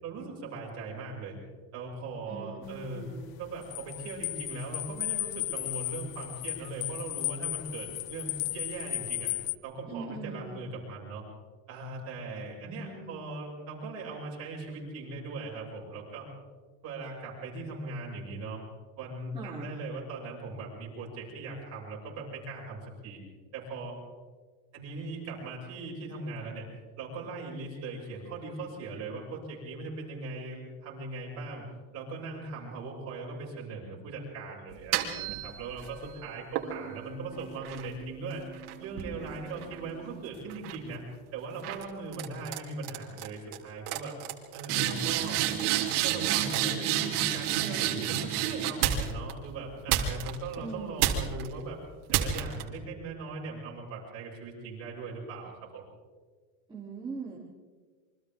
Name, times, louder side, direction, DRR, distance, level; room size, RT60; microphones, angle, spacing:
voice 1, 0.0-1.4 1.7-3.0 3.4-9.3 9.6-11.2 11.7-16.3 16.8-18.6 19.0-23.2 23.5-24.0 24.7-26.7 27.0-31.7 31.9-38.5 38.8-41.1 41.3-44.2 44.5-45.4 46.0-51.8 52.1-55.8, right 3 dB, 35° right, -3 dB, 7.4 m, -39 dB
voice 2, 2.3-3.3 9.9-10.6 12.6-13.1 19.3-19.7 50.6-51.1 56.7-57.4, right 4 dB, 10° right, -8 dB, 3.5 m, -41 dB
sound 1, 2.6-9.6, left 20 dB, 40° left, 0.7 m, -35 dB
sound 2, 34.7-35.9 36.6-40.1 40.5-40.9 41.6-41.8 42.1-42.6 42.8-43.3 43.5-43.6 43.9-49.3 49.9-50.5 51.0-51.5 52.1-52.6, right 11 dB, 75° right, 3.1 m, -30 dB
28.0 x 24.5 x 3.8 m, 1.5 s
cardioid pair, 165°, 45 cm